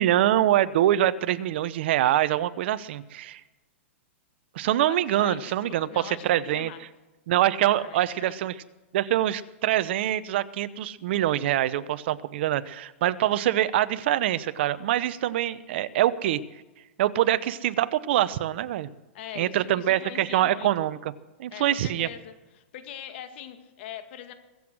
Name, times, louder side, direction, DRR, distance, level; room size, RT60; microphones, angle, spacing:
voice 1, 0.0-3.4 4.5-6.7 7.3-8.5 8.9-16.4 17.0-18.9 19.4-21.1 21.4-22.1, right 13 dB, 55° right, 15 dB, 0.8 m, -24 dB
voice 2, 4.8-6.8 7.4-8.4 19.1-20.7 21.5-24.3, left 10 dB, 55° left, 8 dB, 1.9 m, -42 dB
22.5 x 8.0 x 6.2 m, 1.2 s
hypercardioid pair, 145°, 7 cm